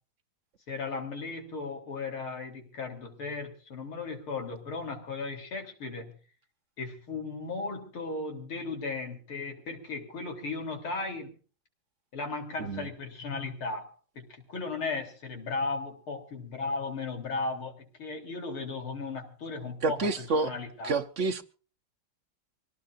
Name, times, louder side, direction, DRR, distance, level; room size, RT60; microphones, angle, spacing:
voice 1, 0.7-6.2 6.8-11.4 12.1-20.9, left 3 dB, 85° left, 4.3 m, -36 dB
voice 2, 19.8-20.5 20.8-21.4, right 3 dB, 50° right, 1.0 m, -28 dB
25.0 x 18.0 x 2.6 m
omnidirectional pair, 2.3 m